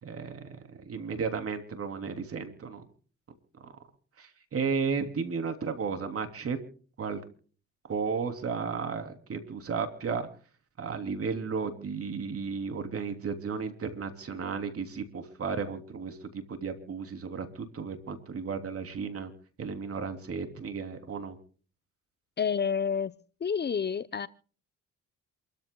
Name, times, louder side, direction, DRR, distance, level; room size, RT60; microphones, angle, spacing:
voice 1, 0.0-2.8 3.6-3.7 4.2-6.6 7.0-7.2 7.9-10.3 10.8-19.3 19.6-21.4, right 5 dB, 50° right, 6 dB, 3.2 m, -34 dB
voice 2, 22.4-23.2 23.4-24.3, left 6 dB, 35° left, 16 dB, 0.7 m, -29 dB
28.0 x 14.0 x 2.3 m, 0.41 s
cardioid pair, 90°, 30 cm